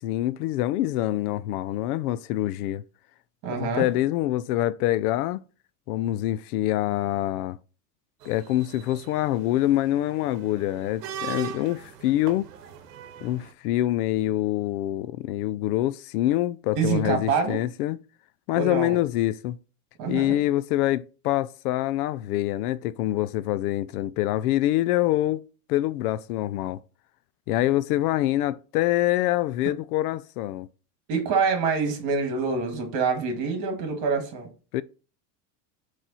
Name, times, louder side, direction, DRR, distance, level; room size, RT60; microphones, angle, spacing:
voice 1, 0.0-2.8 3.6-5.4 5.9-7.6 8.2-12.5 13.2-18.0 18.5-19.6 20.1-25.4 25.7-26.8 27.5-30.7 34.7-34.8, left 14 dB, 70° left, 0.5 m, -25 dB
voice 2, 3.4-3.9 16.7-17.6 18.5-19.0 20.0-20.3 31.1-34.5, right 5 dB, 45° right, 2.1 m, -26 dB
sound 1, 8.2-13.5, right 9 dB, 75° right, 1.0 m, -40 dB
7.6 x 3.3 x 4.1 m
supercardioid pair, 165°, 46 cm